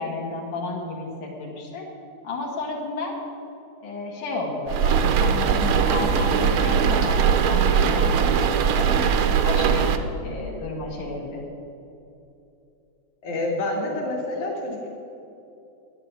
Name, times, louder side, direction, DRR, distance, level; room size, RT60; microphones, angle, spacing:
voice 1, 0.0-1.8 2.2-3.1 3.8-8.9 9.4-9.9 10.2-11.4, left 3 dB, 90° left, -3 dB, 3.5 m, -32 dB
sound 1, 4.7-10.0, right 7 dB, 90° right, 1.2 m, -20 dB
voice 2, 13.2-14.9, left 2 dB, 70° left, -2 dB, 3.6 m, -28 dB
12.0 x 9.8 x 8.0 m, 2.8 s
omnidirectional pair, 3.5 m